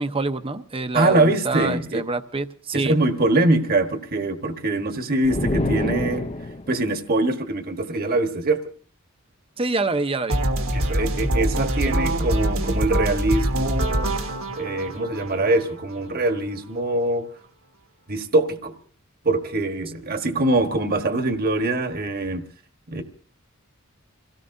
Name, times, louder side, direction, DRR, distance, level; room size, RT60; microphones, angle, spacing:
voice 1, 0.0-2.9 9.6-10.4 11.4-11.7, right 3 dB, 25° right, 9 dB, 0.8 m, -26 dB
voice 2, 0.9-2.0 2.7-6.2 6.7-8.6 10.7-14.1 14.6-17.3 18.1-18.7 19.2-22.4 22.9-23.0, right 2 dB, 45° right, 6 dB, 1.3 m, -23 dB
sound 1, 5.2-6.8, left 2 dB, 30° left, 0.7 m, -26 dB
electric fast groove, 10.3-16.3, right 1 dB, 70° right, 1.6 m, -24 dB
27.0 x 17.5 x 2.7 m, 0.42 s
head